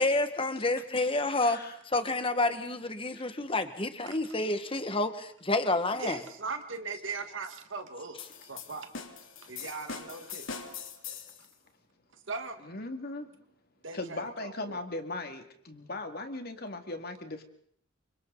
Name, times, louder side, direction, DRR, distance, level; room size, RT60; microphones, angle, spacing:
voice 1, 0.0-1.6 1.9-6.2, left 2 dB, 25° left, 9 dB, 1.6 m, -29 dB
voice 2, 1.4-1.8 3.1-3.2 12.6-13.3 13.9-17.4, left 2 dB, 50° left, 6 dB, 2.4 m, -38 dB
voice 3, 6.0-8.9 9.4-10.5 12.1-12.6 13.8-14.8, right 4 dB, 60° right, 6 dB, 1.8 m, -39 dB
sound 1, 8.2-11.5, left 6 dB, 65° left, 2.7 m, -42 dB
28.5 x 25.5 x 4.0 m, 0.63 s
head